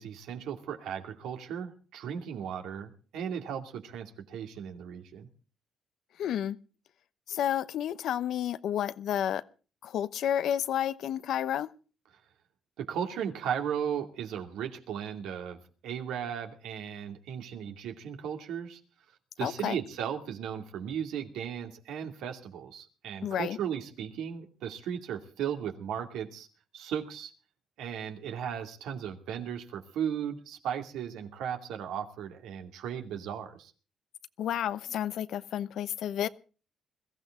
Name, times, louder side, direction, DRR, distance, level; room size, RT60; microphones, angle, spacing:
voice 1, 0.0-5.3 12.8-18.8 19.4-26.5 26.7-27.3 27.8-33.7, right 8 dB, 90° right, 2.5 m, -36 dB
voice 2, 6.2-6.6 7.3-9.4 9.8-11.7 19.4-19.8 23.2-23.6 34.4-36.3, left 10 dB, 75° left, 0.9 m, -31 dB
21.5 x 15.0 x 3.7 m
cardioid pair, 90°, 0 cm